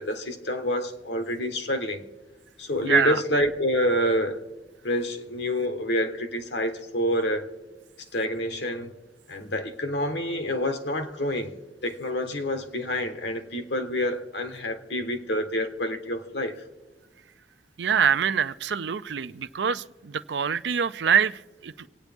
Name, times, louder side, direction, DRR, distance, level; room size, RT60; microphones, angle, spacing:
voice 1, 0.0-2.0 2.6-4.4 4.8-7.5 8.1-8.9 9.3-11.6 11.8-16.6, left 1 dB, 70° left, 1.3 m, -27 dB
voice 2, 2.9-3.2 17.8-21.7, right 7 dB, 70° right, 0.5 m, -25 dB
27.0 x 9.2 x 3.5 m
head